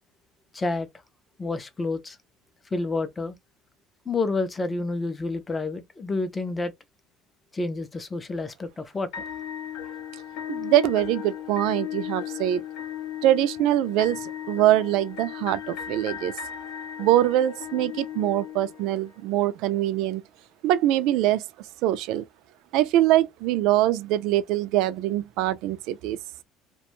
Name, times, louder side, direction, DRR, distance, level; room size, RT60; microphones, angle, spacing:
voice 1, 0.5-0.9 1.4-2.2 2.7-3.4 4.1-6.7 7.5-9.1, left 3 dB, 15° left, 0.4 m, -29 dB
sound 1, 9.1-19.2, left 10 dB, 75° left, 0.6 m, -36 dB
voice 2, 10.5-12.6 13.2-16.3 17.0-20.2 20.6-21.4 21.8-22.3 22.7-26.2, right 13 dB, 65° right, 0.3 m, -23 dB
2.4 x 2.2 x 2.9 m
cardioid pair, 160°, 0 cm